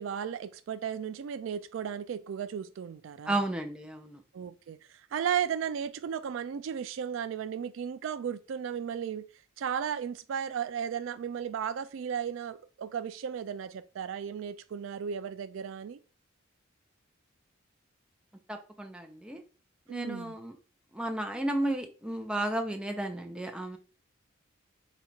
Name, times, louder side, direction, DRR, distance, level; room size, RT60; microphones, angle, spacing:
voice 1, 0.0-3.4 4.3-9.3 9.6-16.0 19.9-20.4, right 8 dB, 65° right, 0.3 m, -35 dB
voice 2, 3.3-4.2 18.5-19.4 19.9-20.5 20.9-23.8, right 1 dB, 5° right, 0.5 m, -33 dB
4.0 x 2.4 x 4.3 m
head